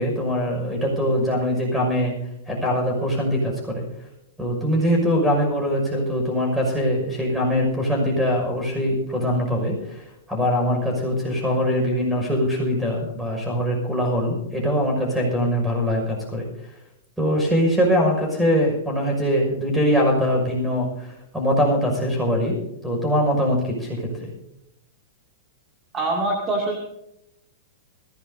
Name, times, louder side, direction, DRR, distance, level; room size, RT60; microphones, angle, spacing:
voice 1, 0.0-2.1 2.5-3.8 4.4-10.0 10.3-16.5 17.2-22.6 22.8-24.1, equal, 5° right, 0 dB, 6.0 m, -22 dB
voice 2, 25.9-26.8, right 2 dB, 20° right, -1 dB, 2.5 m, -24 dB
21.0 x 16.5 x 2.8 m, 0.83 s
supercardioid pair, 155°, 0 cm